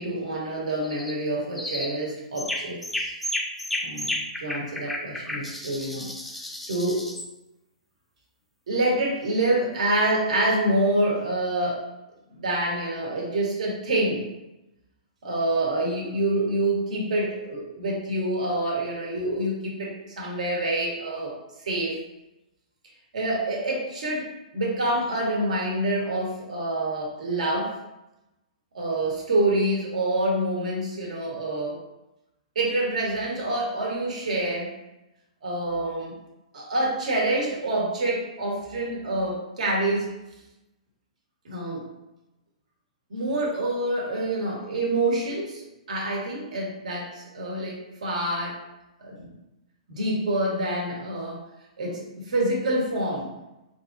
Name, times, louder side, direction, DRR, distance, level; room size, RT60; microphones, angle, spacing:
voice 1, 0.0-3.2 3.8-6.1 6.7-7.0 8.7-11.9 12.3-14.3 15.2-21.3 21.6-22.0 23.1-27.7 28.7-31.7 32.5-34.7 35.4-36.1 36.5-40.1 41.4-41.9 43.1-48.6 49.0-49.3 49.9-51.4 51.8-53.3, right 1 dB, 75° right, -2 dB, 1.2 m, -27 dB
sound 1, 0.8-1.2 1.6-2.0 2.4-7.3, left 1 dB, ahead, 0.3 m, -32 dB
4.2 x 2.7 x 2.5 m, 0.95 s
hypercardioid pair, 135°, 4 cm